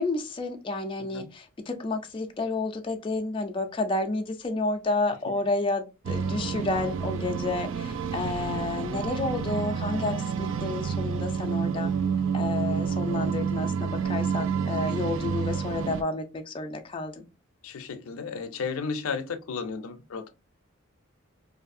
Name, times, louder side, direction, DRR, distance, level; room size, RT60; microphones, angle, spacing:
voice 1, 0.0-11.9 12.3-17.3, left 3 dB, 25° left, 0.4 m, -30 dB
sound 1, 6.0-16.0, right 6 dB, 65° right, 0.3 m, -29 dB
voice 2, 17.6-20.3, left 5 dB, 90° left, 0.4 m, -34 dB
2.6 x 2.4 x 2.5 m
head